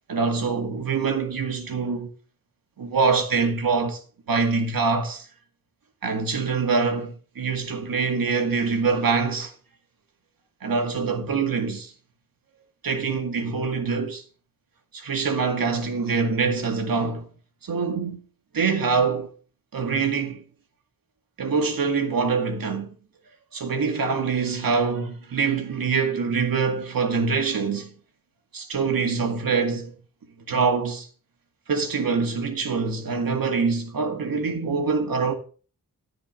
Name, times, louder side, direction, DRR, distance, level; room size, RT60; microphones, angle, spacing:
voice 1, 0.1-2.1 2.8-4.0 4.3-5.3 6.0-9.5 10.6-11.9 12.8-14.2 14.9-17.3 17.6-18.2 18.5-19.3 19.7-20.4 21.4-22.9 23.5-27.9 28.5-29.9 30.5-31.1 31.7-35.3, right 5 dB, 85° right, 2.1 m, -24 dB
13.5 x 5.0 x 6.4 m
wide cardioid pair, 100°, 34 cm